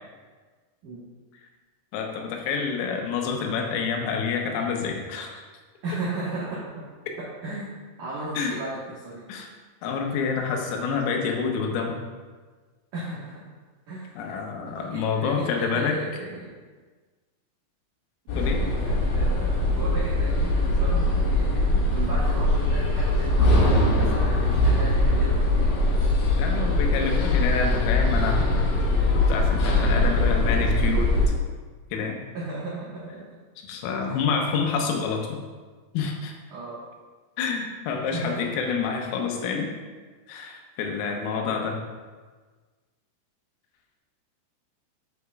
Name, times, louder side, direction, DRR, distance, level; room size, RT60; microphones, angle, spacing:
voice 1, 1.9-5.4 8.4-8.6 9.3-9.5 9.8-12.0 14.2-16.0 18.4-18.6 26.4-28.7 29.2-31.3 31.9-32.2 33.6-35.4 35.9-36.3 37.4-39.7 40.3-41.8, left 5 dB, 85° left, 2 dB, 3.6 m, -28 dB
voice 2, 5.8-6.8 7.2-7.7 8.0-9.2 12.9-13.4 13.9-14.1 14.6-16.5 18.3-25.7 26.3-26.4 32.3-33.2 34.0-34.2 36.5-36.8 38.1-38.5, right 2 dB, 85° right, -9 dB, 1.7 m, -35 dB
sound 1, 18.3-31.3, left 1 dB, 60° left, 3.1 m, -22 dB
8.5 x 8.0 x 2.4 m, 1.4 s
omnidirectional pair, 6.0 m